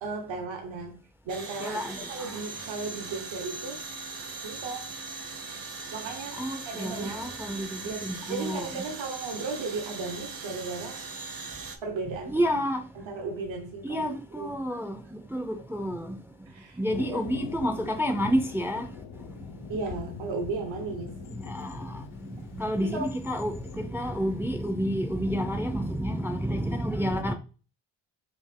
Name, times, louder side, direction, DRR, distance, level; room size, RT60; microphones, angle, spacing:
voice 1, 0.0-1.8 2.1-3.8 4.4-4.9 5.9-7.3 7.8-11.1 11.8-12.6 12.9-14.5 16.5-16.8 17.1-17.2 19.7-21.2 22.9-23.1, right 3 dB, 80° right, 1.0 m, -35 dB
sound 1, 1.3-11.8, right 4 dB, 50° right, 0.7 m, -40 dB
voice 2, 1.6-2.4 6.4-8.8 12.3-12.9 13.8-16.3 16.8-19.5 21.0-27.3, equal, 5° right, 0.3 m, -30 dB
Thunder, 16.9-25.9, left 9 dB, 90° left, 0.7 m, -44 dB
4.2 x 2.8 x 3.6 m
wide cardioid pair, 165°, 46 cm